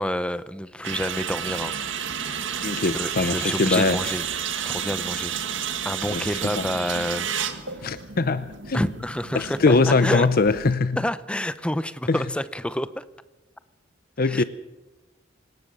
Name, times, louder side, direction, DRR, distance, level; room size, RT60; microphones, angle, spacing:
voice 1, 0.0-1.7 2.8-4.2 4.6-5.3 5.8-7.8 8.7-10.3 11.0-13.0 14.2-14.4, left 1 dB, 5° left, 14 dB, 0.7 m, -28 dB
sound 1, 0.8-10.7, right 8 dB, 85° right, 1.7 m, -31 dB
voice 2, 2.6-4.0 6.1-6.2 6.6-6.7 7.8-8.8 9.3-11.0 12.1-12.2 14.2-14.4, left 3 dB, 50° left, 13 dB, 0.7 m, -22 dB
25.5 x 17.5 x 6.7 m, 1.1 s
head